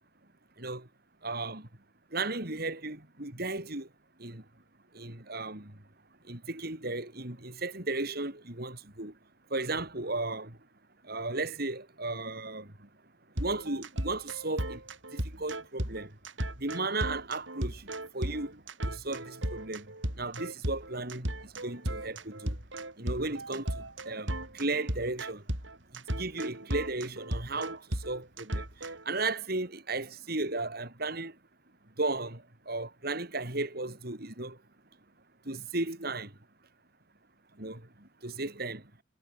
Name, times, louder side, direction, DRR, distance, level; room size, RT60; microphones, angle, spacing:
voice 1, 0.6-0.9 1.2-1.7 2.1-3.9 4.2-4.4 4.9-5.8 6.3-9.1 9.5-10.6 11.0-12.7 13.4-14.8 15.1-16.1 16.6-17.9 18.1-22.6 23.0-25.4 25.9-28.7 29.1-31.4 32.0-34.6 35.5-36.3 37.6-38.8, right 2 dB, 50° right, 3.7 m, -35 dB
sound 1, 13.4-29.0, right 1 dB, 75° right, 6.6 m, -35 dB
head